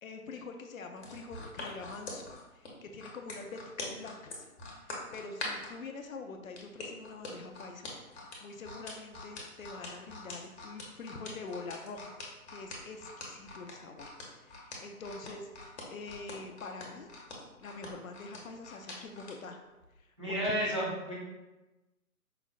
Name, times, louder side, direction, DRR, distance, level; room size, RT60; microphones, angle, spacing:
voice 1, 0.0-4.4 4.8-12.1 12.5-14.1 14.4-15.5 15.9-17.1 17.6-19.6 20.0-20.9, left 3 dB, 65° left, 5 dB, 0.5 m, -45 dB
sound 1, 1.0-5.7 6.6-19.4 19.8-20.0, left 3 dB, 45° left, 0.9 m, -44 dB
voice 2, 20.2-21.1, equal, 20° right, -8 dB, 0.4 m, -31 dB
4.8 x 2.0 x 2.4 m, 1.1 s
figure-of-eight pair, 145°, 44 cm